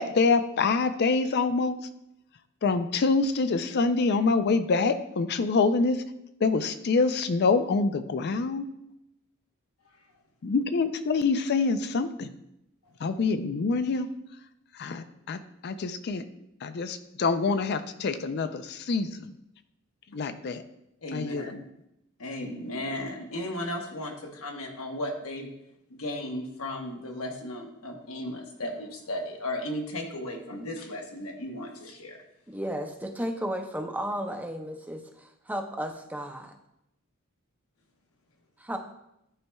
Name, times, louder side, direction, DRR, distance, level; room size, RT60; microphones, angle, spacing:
voice 1, 0.0-1.8 2.6-6.0 6.4-8.7 10.4-12.3 13.0-14.1 14.7-16.3 16.6-19.3 20.1-20.6 21.1-21.6, left 4 dB, 50° left, 11 dB, 0.4 m, -26 dB
voice 2, 21.0-21.5 22.2-25.5 25.9-32.2, left 1 dB, 70° left, 2 dB, 1.1 m, -35 dB
voice 3, 32.5-36.5 38.6-38.8, equal, 5° right, 4 dB, 0.5 m, -34 dB
10.5 x 4.2 x 2.3 m, 0.82 s
head